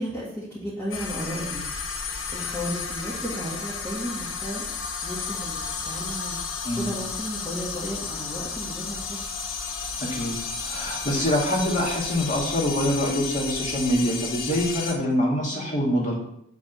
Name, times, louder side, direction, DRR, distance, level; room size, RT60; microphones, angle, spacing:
voice 1, 0.0-1.7 2.3-4.6 5.0-6.4 6.7-9.2 15.5-15.9, equal, 10° left, -9 dB, 2.0 m, -34 dB
sound 1, 0.9-14.9, left 5 dB, 80° left, 1.1 m, -32 dB
voice 2, 10.0-10.4 10.6-16.1, equal, 40° left, -3 dB, 2.3 m, -25 dB
7.5 x 4.2 x 6.9 m, 0.74 s
head